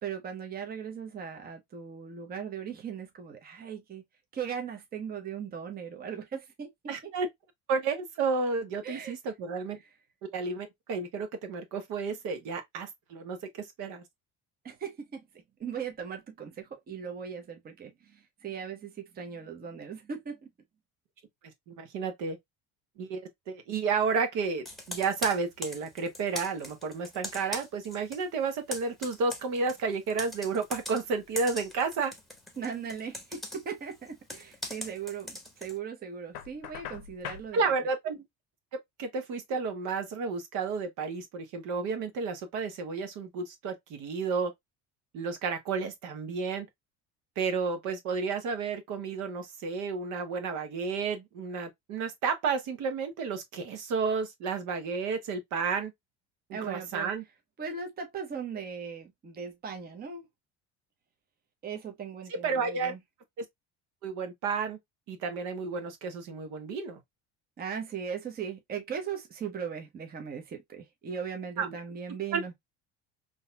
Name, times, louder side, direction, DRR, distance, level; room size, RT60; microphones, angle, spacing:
voice 1, 0.0-4.0 4.3-6.7 7.0-7.1 8.8-9.1 9.8-9.9 14.6-20.4 32.6-37.7 56.5-57.1 57.6-60.3 61.6-63.0 67.6-72.5, right 7 dB, 30° right, 0.8 m, -38 dB
voice 2, 6.9-7.3 7.7-9.8 10.3-14.0 21.7-22.4 23.0-32.1 37.5-38.2 39.0-44.5 45.1-46.7 47.4-55.9 56.6-57.2 62.4-62.9 63.4-63.5 64.0-64.8 65.1-67.0 71.6-71.7 72.3-72.4, right 4 dB, 65° right, 1.2 m, -31 dB
Computer keyboard, 24.7-28.2 28.5-35.8, left 1 dB, ahead, 1.0 m, -41 dB
Knock, 36.3-37.5, left 10 dB, 85° left, 0.8 m, -41 dB
3.9 x 2.8 x 2.2 m
supercardioid pair, 115°, 33 cm